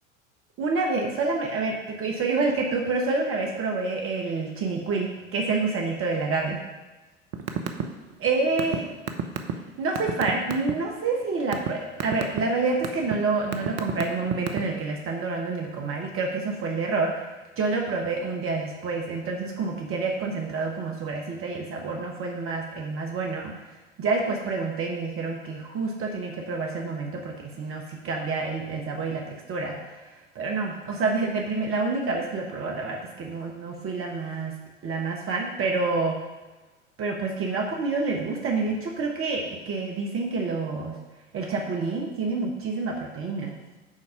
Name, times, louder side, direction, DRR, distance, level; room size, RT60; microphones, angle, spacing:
voice 1, 0.6-6.6 8.2-8.8 9.8-17.2 17.6-23.5 24.0-29.7 30.3-34.5 34.8-36.2 37.0-39.4 39.7-40.9 41.3-43.5, right 3 dB, 35° right, 0 dB, 1.4 m, -28 dB
sound 1, 7.3-7.9 8.1-10.7 11.2-11.7 12.0-12.4 12.8-13.1 13.5-14.8, right 10 dB, 50° right, 1.0 m, -28 dB
9.8 x 4.1 x 5.8 m, 1.2 s
figure-of-eight pair, 80°, 39 cm